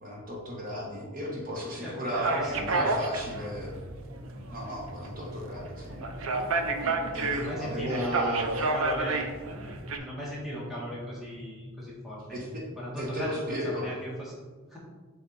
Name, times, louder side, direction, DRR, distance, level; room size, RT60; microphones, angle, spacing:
voice 1, 0.0-3.7 4.5-6.0 7.1-8.7 12.3-12.6 13.0-13.9, equal, 40° right, -3 dB, 1.2 m, -34 dB
voice 2, 1.8-3.3 6.9-9.2 10.0-12.4 12.7-14.3 14.7-14.8, equal, ahead, -7 dB, 1.5 m, -37 dB
sound 1, 2.1-10.0, right 3 dB, 75° right, 0.6 m, -31 dB
sound 2, 3.1-14.0, left 1 dB, 15° left, 0.3 m, -46 dB
7.1 x 3.5 x 4.0 m, 1.4 s
head